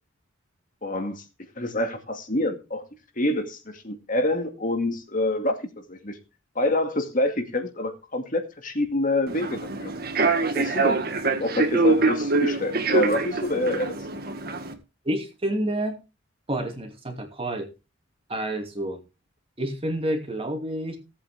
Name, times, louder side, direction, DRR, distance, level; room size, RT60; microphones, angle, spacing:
voice 1, 0.8-1.2 1.6-2.9 3.2-6.2 6.6-9.9 10.4-14.1, left 1 dB, 40° left, 2.2 m, -27 dB
Human voice / Subway metro underground, 9.3-14.7, right 3 dB, 50° right, 1.8 m, -24 dB
voice 2, 15.0-16.0 16.5-17.7 18.3-19.0 19.6-21.0, right 1 dB, 30° right, 2.6 m, -29 dB
17.5 x 8.5 x 3.5 m
head